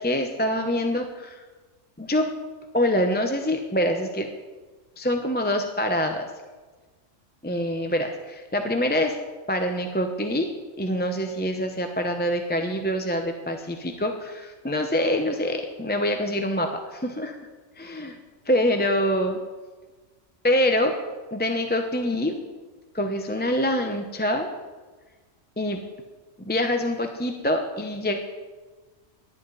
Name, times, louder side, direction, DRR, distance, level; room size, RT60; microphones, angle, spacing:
voice 1, 0.0-1.4 2.0-2.3 2.7-4.3 5.0-6.3 7.4-9.2 9.5-10.5 10.8-17.4 17.8-18.2 18.5-19.4 20.4-20.9 21.3-22.4 22.9-24.5 25.6-25.8 26.4-28.2, left 1 dB, 10° left, 4 dB, 0.8 m, -25 dB
18.5 x 11.5 x 4.1 m, 1.3 s
omnidirectional pair, 1.3 m